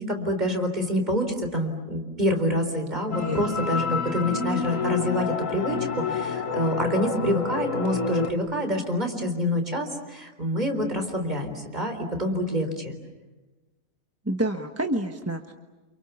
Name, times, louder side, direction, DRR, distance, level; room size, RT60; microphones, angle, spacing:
voice 1, 0.0-12.9, equal, 30° right, 5 dB, 4.3 m, -27 dB
sound 1, 3.1-8.3, left 5 dB, 70° left, 2.1 m, -28 dB
voice 2, 3.1-3.4 14.2-15.5, right 1 dB, 10° right, 4 dB, 1.2 m, -28 dB
29.0 x 29.0 x 7.1 m, 1.2 s
omnidirectional pair, 1.4 m